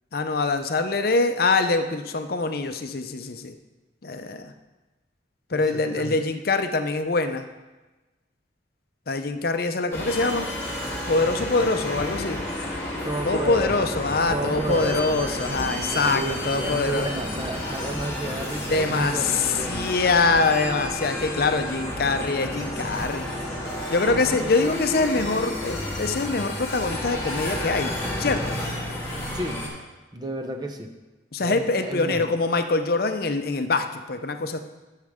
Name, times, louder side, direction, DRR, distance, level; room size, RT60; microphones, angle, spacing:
voice 1, 0.1-3.5 4.0-4.5 5.5-7.5 9.1-10.5 11.1-12.4 13.2-17.1 18.7-23.3 23.9-27.9 28.2-28.6 31.3-34.6, left 3 dB, 55° left, 8 dB, 0.6 m, -24 dB
voice 2, 5.5-6.2 13.0-13.9 14.3-15.2 16.1-19.9 24.1-24.4 29.3-29.7 30.1-30.9 31.4-32.3, right 1 dB, 20° right, 5 dB, 0.7 m, -32 dB
sound 1, 9.9-29.7, left 1 dB, 15° left, 2.0 m, -31 dB
12.5 x 6.5 x 3.6 m, 1.2 s
head